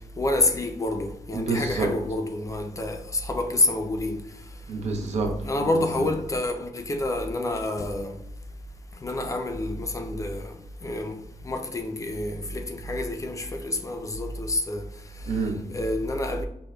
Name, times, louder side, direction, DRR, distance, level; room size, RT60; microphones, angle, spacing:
voice 1, 0.2-4.2 5.4-8.2 9.0-10.5 10.8-14.9 15.7-16.4, left 2 dB, 25° left, 0.4 m, -28 dB
voice 2, 1.3-1.9 4.7-6.1 15.3-15.6, right 4 dB, 70° right, 0.6 m, -28 dB
4.9 x 2.2 x 2.2 m
cardioid pair, 100°, 12 cm